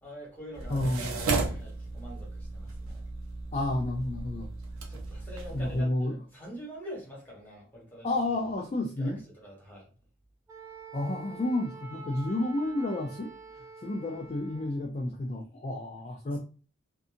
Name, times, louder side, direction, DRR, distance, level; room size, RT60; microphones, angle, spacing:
voice 1, 0.0-3.0 4.9-8.1 9.0-9.9 16.3-16.4, equal, 10° left, -3 dB, 1.1 m, -45 dB
sound 1, 0.5-5.8, right 3 dB, 80° right, 0.5 m, -35 dB
voice 2, 0.7-1.1 3.5-4.5 5.5-6.2 8.0-9.2 10.9-13.3 13.8-16.4, left 1 dB, 30° left, 0 dB, 0.3 m, -30 dB
Wind instrument woodwind instrument, 10.5-14.8, right 4 dB, 15° right, 0.6 m, -47 dB
2.7 x 2.5 x 2.4 m, 0.35 s
head